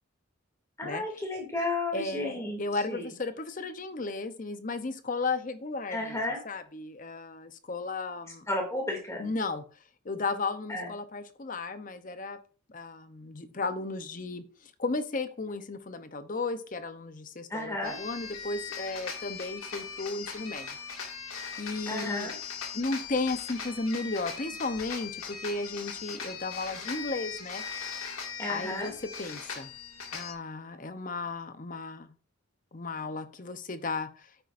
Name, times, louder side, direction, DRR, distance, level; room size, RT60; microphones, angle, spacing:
voice 1, 0.8-2.6 2.9-3.1 5.9-6.4 8.5-9.2 10.7-10.9 17.5-18.0 21.9-22.4 28.4-28.9, left 2 dB, 15° left, 0 dB, 2.4 m, -32 dB
voice 2, 1.9-6.2 6.5-8.5 9.2-9.6 10.0-12.4 12.7-20.8 21.6-22.3 22.7-27.6 28.5-29.7 30.1-32.1 32.7-34.3, left 3 dB, 35° left, 11 dB, 0.7 m, -34 dB
sound 1, 17.8-30.3, left 6 dB, 80° left, 2.1 m, -39 dB
9.3 x 9.0 x 2.5 m, 0.41 s
head